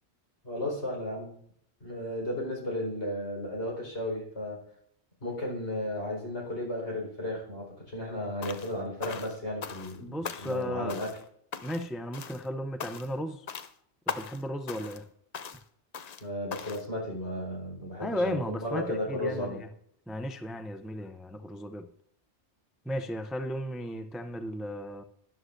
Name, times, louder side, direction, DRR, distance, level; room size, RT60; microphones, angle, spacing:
voice 1, 0.4-1.3 1.8-4.6 5.2-11.1 16.2-19.6, left 1 dB, 75° left, 4.7 m, -34 dB
sound 1, 8.4-8.7 9.0-10.0 10.2-10.6 10.9-11.2 11.5-11.9 12.1-12.5 12.8-13.2 13.5-13.7 14.1-14.4 14.7-15.0 15.3-15.6 15.9-16.2 16.5-16.9, left 6 dB, 50° left, 0.6 m, -39 dB
voice 2, 10.0-11.0 11.6-13.5 14.1-15.1 18.0-19.7 20.1-21.9 22.8-25.0, equal, ahead, 0.3 m, -35 dB
13.0 x 11.0 x 2.6 m
omnidirectional pair, 1.1 m